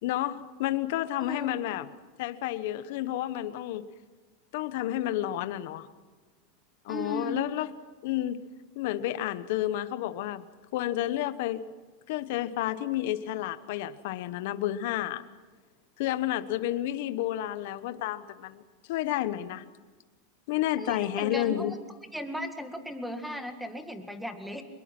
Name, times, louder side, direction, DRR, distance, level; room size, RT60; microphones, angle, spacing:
voice 1, 0.0-1.9 2.2-3.9 4.5-5.9 6.8-7.7 8.0-8.5 8.7-10.4 10.7-11.7 12.1-15.2 16.0-18.6 18.9-19.6 20.5-21.7, left 13 dB, 65° left, 13 dB, 1.0 m, -30 dB
voice 2, 1.2-1.5 6.9-7.4 20.8-21.8 22.1-24.6, equal, ahead, 7 dB, 1.9 m, -36 dB
24.0 x 21.5 x 6.1 m, 1.3 s
supercardioid pair, 140°, 0 cm